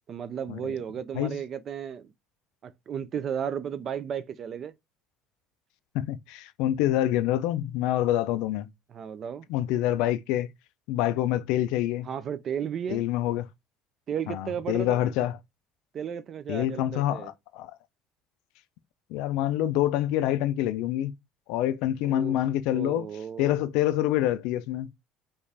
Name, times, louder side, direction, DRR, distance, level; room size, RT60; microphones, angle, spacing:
voice 1, 0.1-2.1 2.6-4.7 8.9-9.5 12.0-13.1 14.1-15.0 15.9-17.3 22.0-22.4 22.7-23.5, right 8 dB, 30° right, 0.4 m, -34 dB
voice 2, 5.9-8.7 9.5-10.5 10.9-12.1 12.9-13.5 14.3-15.4 16.5-17.7 19.1-21.1 21.5-23.1 23.4-24.9, left 13 dB, 70° left, 0.4 m, -26 dB
5.3 x 2.4 x 3.3 m
cardioid pair, 180°, 0 cm